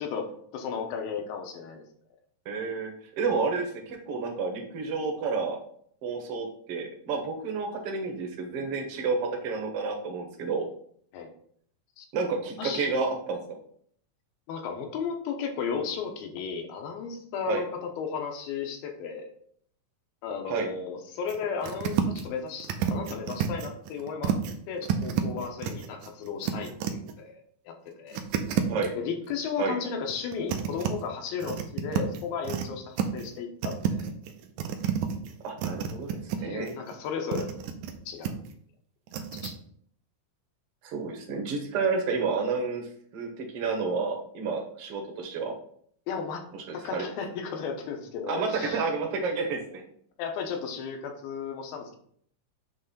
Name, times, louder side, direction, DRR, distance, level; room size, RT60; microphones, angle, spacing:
voice 1, 0.0-1.8 6.1-6.2 11.1-11.3 12.0-12.1 12.6-12.9 14.5-19.3 20.2-24.4 24.7-28.2 29.0-34.1 36.4-37.6 38.1-38.4 39.3-39.6 46.1-46.4 46.7-48.8 50.2-52.0, left 6 dB, 85° left, 3 dB, 2.8 m, -34 dB
voice 2, 2.4-5.6 6.0-10.7 12.1-13.4 17.4-17.6 20.5-20.7 28.7-28.9 29.6-29.8 35.4-36.7 40.8-45.5 46.5-47.0 48.3-49.8, right 4 dB, 60° right, 2 dB, 1.6 m, -30 dB
sound 1, 21.3-21.4 21.6-22.3 22.6-24.5 24.8-27.1 28.1-28.9 30.1-30.9 31.4-32.7 33.0-33.4 33.6-36.4 36.7-37.9 38.2-38.5 39.1-39.5, right 9 dB, 75° right, 1.9 m, -30 dB
8.1 x 3.3 x 5.5 m, 0.62 s
omnidirectional pair, 4.2 m